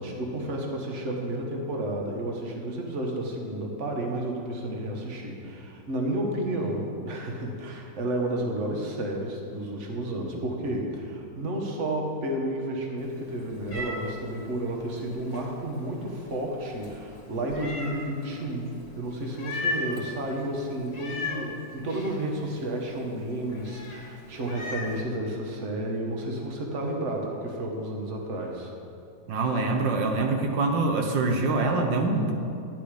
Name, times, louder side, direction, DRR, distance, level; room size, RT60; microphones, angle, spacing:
voice 1, 0.0-28.7, right 1 dB, 45° right, 0 dB, 1.6 m, -31 dB
Meow, 13.0-25.0, left 2 dB, 75° left, 2.3 m, -39 dB
voice 2, 29.3-32.3, right 3 dB, 85° right, 3 dB, 1.7 m, -25 dB
11.0 x 10.5 x 5.0 m, 2.5 s
omnidirectional pair, 1.9 m